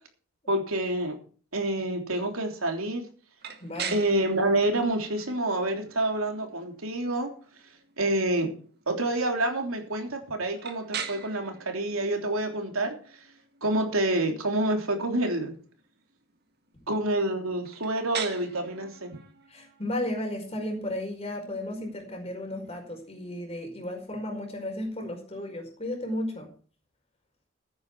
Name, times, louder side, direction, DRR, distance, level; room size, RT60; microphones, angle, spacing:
voice 1, 0.5-1.2 1.5-3.0 3.9-7.3 8.0-8.5 8.9-12.9 13.6-15.5 16.9-19.1, right 1 dB, 85° right, 4 dB, 3.3 m, -27 dB
sound 1, 3.4-23.2, right 7 dB, 50° right, 1.8 m, -44 dB
voice 2, 3.6-4.0 19.5-26.5, left 1 dB, 30° left, 2 dB, 5.1 m, -34 dB
15.0 x 9.6 x 4.8 m, 0.41 s
head